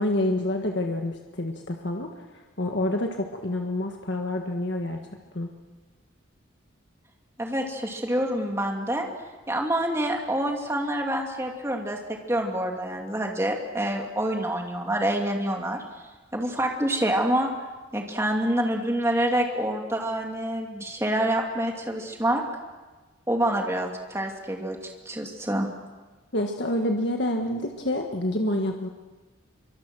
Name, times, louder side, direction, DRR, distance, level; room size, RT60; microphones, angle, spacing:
voice 1, 0.0-5.0 5.3-5.5 26.3-28.9, left 1 dB, 60° left, 3 dB, 1.7 m, -28 dB
voice 2, 7.4-9.1 9.5-12.0 12.3-15.8 16.3-17.5 17.9-22.4 23.3-24.8 25.1-25.7, right 1 dB, 15° right, 1 dB, 2.8 m, -27 dB
26.5 x 24.5 x 6.3 m, 1.3 s
head